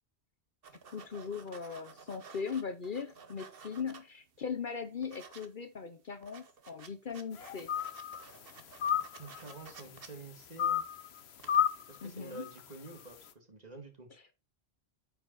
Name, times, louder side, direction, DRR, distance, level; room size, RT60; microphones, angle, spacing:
sound 1, 0.6-4.4 4.7-5.5 5.8-5.9 6.1-11.0 11.3-11.8, right 6 dB, 60° right, 1.2 m, -53 dB
voice 1, 0.9-7.7 12.0-12.5, left 6 dB, 55° left, 0.9 m, -39 dB
sound 2, 7.4-8.2 8.6-9.6 10.6-11.1 11.5-12.0 12.4-12.6, left 9 dB, 75° left, 1.0 m, -31 dB
voice 2, 9.2-10.8 11.9-14.1, right 3 dB, 40° right, 2.3 m, -49 dB
9.1 x 5.3 x 4.1 m
omnidirectional pair, 1.1 m